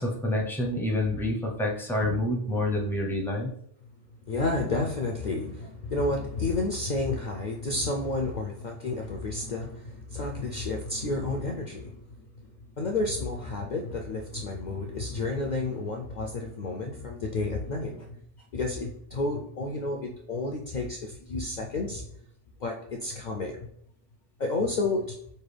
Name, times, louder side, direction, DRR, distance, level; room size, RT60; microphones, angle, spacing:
voice 1, 0.0-3.5, left 1 dB, 5° left, -1 dB, 0.4 m, -28 dB
voice 2, 3.8-18.2 18.5-22.1 22.6-23.7 24.4-25.2, left 2 dB, 65° left, 1 dB, 0.4 m, -31 dB
5.4 x 2.2 x 3.3 m, 0.67 s
omnidirectional pair, 1.2 m